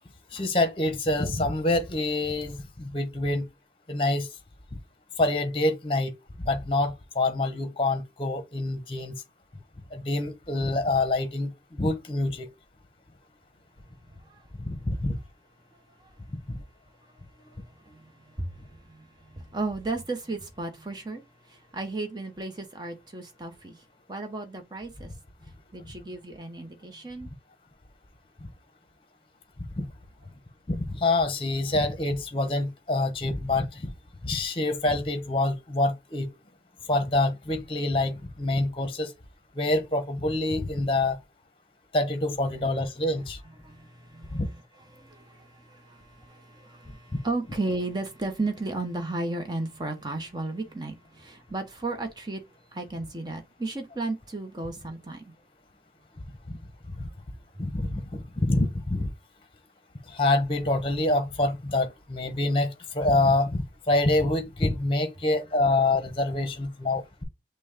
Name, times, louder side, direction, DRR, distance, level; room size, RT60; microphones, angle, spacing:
voice 1, 0.3-3.5 3.9-4.3 5.2-6.1 6.4-9.1 9.9-12.5 14.6-15.2 16.5-16.6 29.8-29.9 30.7-33.9 34.2-36.3 36.9-39.1 39.6-41.2 41.9-43.4 44.3-44.5 57.0-57.1 57.6-58.0 58.4-59.1 60.1-67.2, left 2 dB, 30° left, 0.9 m, -26 dB
voice 2, 18.4-19.1 19.3-21.2 21.5-23.7 24.1-25.1 25.7-27.3 43.6-44.4 44.9-52.4 52.7-55.2, right 2 dB, 25° right, 0.9 m, -34 dB
6.0 x 2.2 x 3.6 m
head